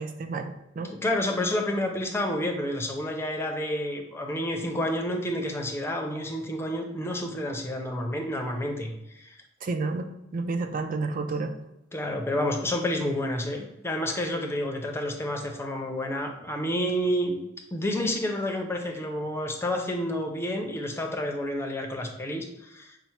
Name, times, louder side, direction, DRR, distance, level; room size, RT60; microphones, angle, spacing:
voice 1, 0.0-0.9 9.6-11.5, right 3 dB, 45° right, 7 dB, 0.4 m, -31 dB
voice 2, 0.9-9.4 11.9-17.4 17.7-23.0, left 1 dB, 15° left, 3 dB, 0.5 m, -29 dB
5.4 x 2.1 x 4.4 m, 0.89 s
head